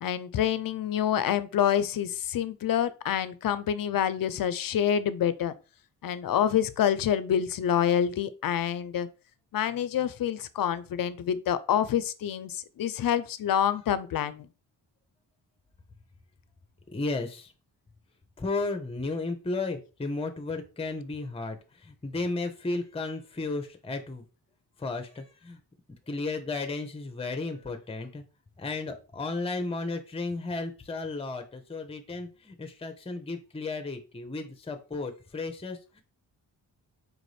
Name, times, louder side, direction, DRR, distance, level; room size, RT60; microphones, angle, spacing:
voice 1, 0.0-5.5 6.0-9.1 9.5-14.5, left 9 dB, 45° left, 0.5 m, -27 dB
voice 2, 16.9-17.5 18.4-21.6 21.8-24.2 24.8-25.6 26.1-28.2 28.6-36.0, left 3 dB, 10° left, 0.7 m, -34 dB
4.8 x 2.5 x 3.3 m
supercardioid pair, 45°, 48 cm